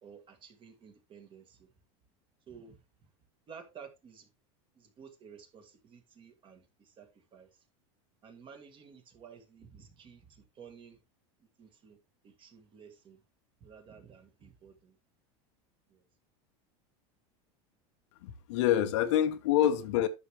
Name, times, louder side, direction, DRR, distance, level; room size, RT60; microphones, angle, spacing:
voice 1, 0.0-1.7 2.5-3.1 3.5-4.3 4.8-7.6 8.2-11.0 11.6-12.0 12.2-13.2 13.6-15.0 15.9-16.0, right 6 dB, 35° right, 1.9 m, -53 dB
voice 2, 18.2-20.1, left 11 dB, 80° left, 1.0 m, -26 dB
11.0 x 6.4 x 3.1 m
supercardioid pair, 135°, 15 cm